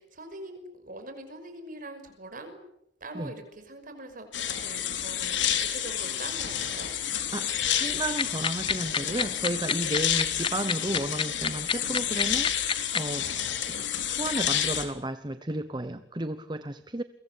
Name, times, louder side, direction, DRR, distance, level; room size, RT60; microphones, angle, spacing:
voice 1, 0.0-2.6 3.0-6.9, right 2 dB, 45° right, 5.9 m, -43 dB
sound 1, 4.3-14.8, left 9 dB, 70° left, 4.0 m, -30 dB
voice 2, 7.3-13.3 13.7-17.0, right 1 dB, 25° right, 1.0 m, -33 dB
sound 2, 8.2-13.0, left 6 dB, 25° left, 1.1 m, -26 dB
29.5 x 23.5 x 8.3 m
head